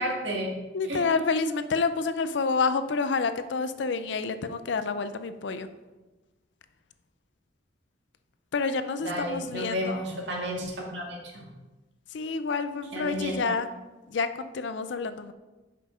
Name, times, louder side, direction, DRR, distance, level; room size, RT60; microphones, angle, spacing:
voice 1, 0.0-0.6 0.9-1.1 9.0-11.4 12.9-13.4, equal, 70° right, -1 dB, 1.8 m, -32 dB
voice 2, 0.7-5.7 8.5-10.0 12.1-13.7 14.1-15.3, left 4 dB, 70° left, 11 dB, 0.5 m, -28 dB
5.7 x 5.4 x 5.0 m, 1.1 s
head